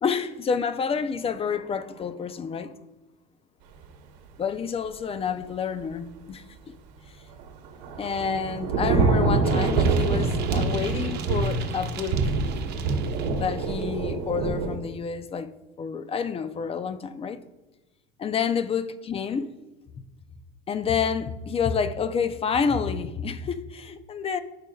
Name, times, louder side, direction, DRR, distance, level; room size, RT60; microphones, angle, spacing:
voice 1, 0.0-2.7 4.4-6.7 8.0-12.3 13.3-15.5 15.8-17.4 18.2-19.5 20.0-20.1 20.7-24.4, left 6 dB, 30° left, 0.5 m, -29 dB
Thunder / Rain, 7.4-14.8, right 4 dB, 85° right, 1.1 m, -25 dB
sound 1, 9.4-13.9, right 9 dB, 50° right, 0.9 m, -41 dB
13.5 x 4.9 x 2.3 m
supercardioid pair, 105°, 21 cm